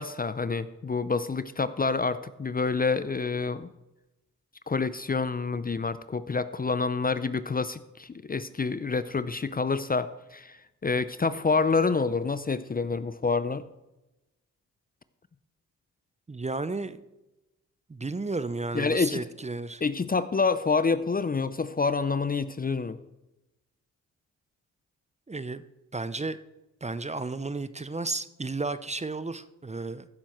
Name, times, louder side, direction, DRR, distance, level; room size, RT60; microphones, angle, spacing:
voice 1, 0.0-3.7 4.7-13.6 18.7-19.2 19.8-23.0, left 4 dB, 25° left, 14 dB, 0.6 m, -27 dB
voice 2, 16.3-17.0 17.9-19.8 25.3-25.6 25.9-26.4 26.8-30.1, right 3 dB, 20° right, 14 dB, 0.7 m, -33 dB
15.5 x 7.0 x 4.5 m, 0.99 s
supercardioid pair, 50°, 34 cm